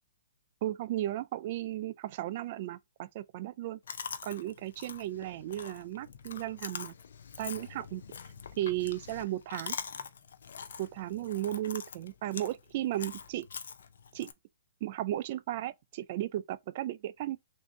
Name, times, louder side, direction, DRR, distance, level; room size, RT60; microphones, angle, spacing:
voice 1, 0.6-3.8 4.2-6.9 7.4-8.0 8.6-9.8 10.8-13.5 14.1-14.3 14.8-17.4, right 14 dB, 45° right, 0.4 m, -35 dB
Chewing mastication, 3.9-14.3, left 6 dB, 75° left, 0.5 m, -44 dB
3.5 x 2.7 x 4.0 m
hypercardioid pair, 145°, 0 cm